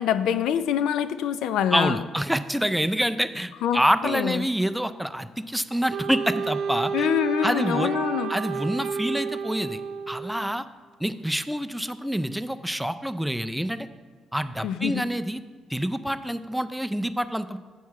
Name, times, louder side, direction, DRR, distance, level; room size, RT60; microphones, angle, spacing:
voice 1, 0.0-2.0 3.6-4.5 6.9-8.3 14.6-15.1, left 9 dB, 85° left, 12 dB, 0.3 m, -25 dB
voice 2, 1.7-7.1 7.4-7.9 8.3-9.8 10.1-10.6 11.0-13.9 14.3-15.4 15.7-17.6, equal, ahead, 11 dB, 0.4 m, -27 dB
Wind instrument woodwind instrument, 5.9-10.5, right 6 dB, 70° right, 0.4 m, -31 dB
8.3 x 4.6 x 5.7 m, 1.5 s
cardioid pair, 85°, 0 cm